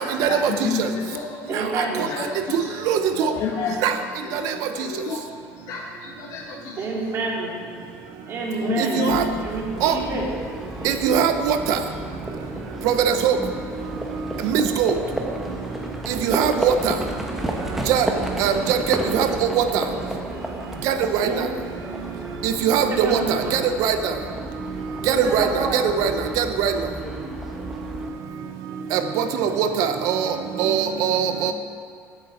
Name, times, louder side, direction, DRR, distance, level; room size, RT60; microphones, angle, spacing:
voice 1, 0.0-5.3 5.6-7.4 8.2-8.3 8.6-9.3, left 5 dB, 60° left, -1 dB, 1.3 m, -31 dB
voice 2, 1.5-2.1 6.8-7.6 8.2-10.3 21.2-21.4 22.9-23.7 25.0-26.0, right 3 dB, 40° right, -3 dB, 2.5 m, -28 dB
Livestock farm animals working animals, 9.1-28.1, equal, 5° right, 1.1 m, -32 dB
voice 3, 10.8-11.8 12.8-13.4 14.5-14.9 16.3-16.7 17.9-18.1 18.4-19.3 19.6-19.7 20.9-21.0 21.2-21.3 22.4-23.2 23.8-24.0 25.1-25.4 25.7-26.1 26.4-26.7 28.9-30.2 30.6-31.5, right 8 dB, 65° right, 8 dB, 0.9 m, -21 dB
8.1 x 7.0 x 8.4 m, 2.3 s
cardioid pair, 145°, 6 cm